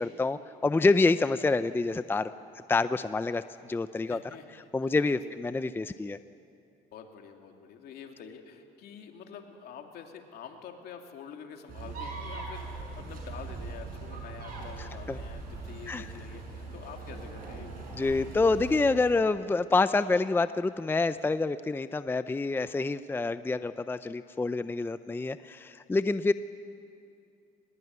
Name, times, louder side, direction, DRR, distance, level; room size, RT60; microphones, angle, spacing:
voice 1, 0.0-2.3 2.7-3.4 3.7-4.2 4.7-6.2 15.1-15.2 15.9-16.0 18.0-26.3, left 3 dB, 15° left, 13 dB, 0.5 m, -27 dB
voice 2, 3.9-5.3 6.9-17.9, left 7 dB, 70° left, 3 dB, 2.8 m, -47 dB
sound 1, 11.7-19.0, right 4 dB, 55° right, 6.8 m, -41 dB
22.5 x 20.5 x 9.5 m, 2.6 s
cardioid pair, 110°, 17 cm